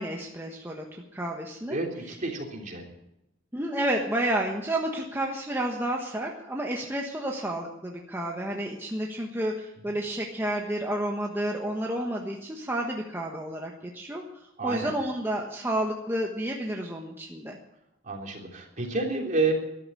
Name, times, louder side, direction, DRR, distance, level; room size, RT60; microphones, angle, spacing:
voice 1, 0.0-1.8 3.5-14.2 14.6-17.6, right 1 dB, 10° right, 0 dB, 1.3 m, -30 dB
voice 2, 1.7-2.8 14.6-14.9 18.0-19.5, right 3 dB, 40° right, 0 dB, 3.4 m, -29 dB
14.0 x 11.0 x 8.7 m, 0.87 s
head